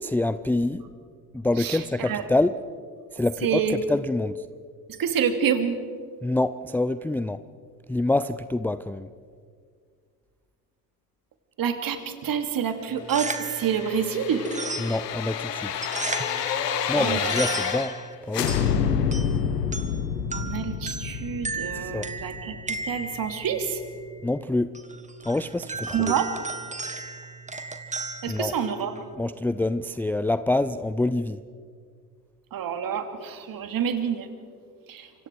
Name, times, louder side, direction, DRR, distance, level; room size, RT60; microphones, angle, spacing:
voice 1, 0.0-0.8 1.3-2.6 3.1-4.4 6.2-7.4 7.9-9.1 14.8-15.7 16.9-18.0 18.3-18.5 21.7-22.1 24.2-24.7 25.3-26.1 28.3-28.6 29.2-31.4, left 2 dB, 5° left, 13 dB, 0.5 m, -26 dB
voice 2, 1.6-2.2 3.4-3.8 5.0-5.7 11.6-14.5 16.9-17.4 20.3-23.8 25.9-26.3 28.2-29.0 32.5-34.3 34.9-35.1, right 7 dB, 45° right, 7 dB, 2.8 m, -27 dB
sound 1, 12.9-29.1, right 3 dB, 15° right, 1.9 m, -36 dB
sound 2, 13.3-18.1 18.3-23.2 23.6-23.7, left 7 dB, 85° left, 1.6 m, -29 dB
27.5 x 25.5 x 4.8 m, 2.1 s
hypercardioid pair, 65°, 47 cm